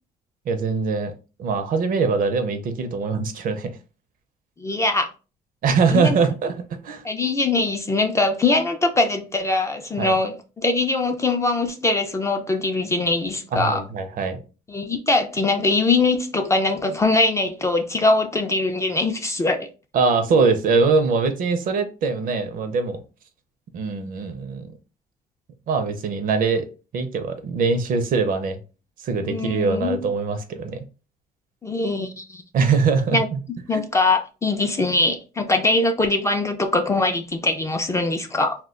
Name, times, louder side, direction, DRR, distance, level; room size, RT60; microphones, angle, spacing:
voice 1, 0.5-1.1 1.4-3.7 5.6-7.0 10.0-10.2 13.5-14.4 19.9-23.0 23.7-24.7 25.7-26.6 26.9-28.6 29.0-30.8 32.5-33.4 33.7-33.9, right 4 dB, 55° right, 0.5 m, -22 dB
voice 2, 4.6-5.1 5.9-6.2 7.0-13.8 14.7-19.7 29.2-30.0 31.6-32.4 33.1-33.3 33.7-38.5, left 3 dB, 15° left, 0.4 m, -22 dB
2.2 x 2.1 x 3.6 m
cardioid pair, 110°, 17 cm